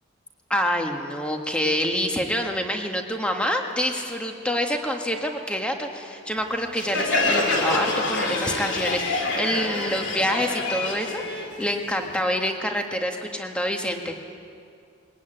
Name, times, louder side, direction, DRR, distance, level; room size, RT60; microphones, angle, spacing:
voice 1, 0.5-14.2, equal, 5° left, 3 dB, 1.6 m, -27 dB
Crowd, 6.8-12.2, left 2 dB, 60° left, 2.8 m, -26 dB
21.5 x 19.5 x 9.1 m, 2.4 s
head